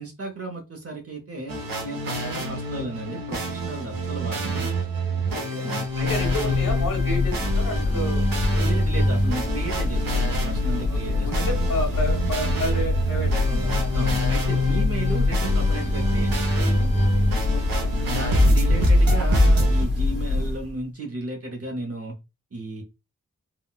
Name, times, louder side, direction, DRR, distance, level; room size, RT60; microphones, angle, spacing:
voice 1, 0.0-1.6 1.8-4.7 5.6-6.9 8.6-11.6 13.5-16.9 18.1-22.1 22.5-22.8, right 2 dB, 45° right, 2 dB, 0.7 m, -34 dB
sound 1, 1.5-19.8, equal, 90° right, 0.9 m, -25 dB
voice 2, 5.3-5.7 6.0-8.2 10.9-13.9 14.5-14.6 17.5-17.9, left 1 dB, 75° left, -1 dB, 1.1 m, -31 dB
Church bell, 5.9-20.8, left 3 dB, 35° left, 1.4 m, -25 dB
3.7 x 2.2 x 2.3 m, 0.26 s
wide cardioid pair, 75°, 33 cm